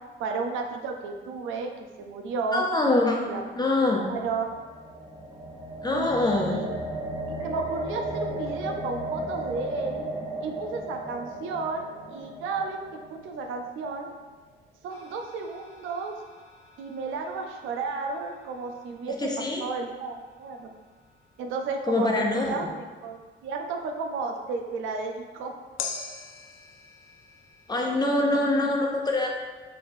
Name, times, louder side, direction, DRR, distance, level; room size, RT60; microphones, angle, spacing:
voice 1, 0.2-2.7 3.3-3.4 4.0-4.5 5.9-6.7 7.3-10.1 10.4-12.8 13.1-14.1 14.8-16.1 16.8-19.3 19.6-20.7 21.4-25.5 27.8-28.0 28.3-28.4, right 4 dB, 85° right, 3 dB, 0.5 m, -33 dB
voice 2, 2.5-3.2 3.6-4.0 5.8-6.6 19.2-19.6 21.9-22.6 27.7-29.3, left 2 dB, 20° left, 0 dB, 0.5 m, -24 dB
sound 1, 3.9-14.0, right 1 dB, 20° right, 0.7 m, -36 dB
sound 2, 14.9-24.3 25.8-27.8, left 6 dB, 80° left, 0.5 m, -45 dB
4.0 x 3.2 x 2.6 m, 1.4 s
cardioid pair, 90°, 20 cm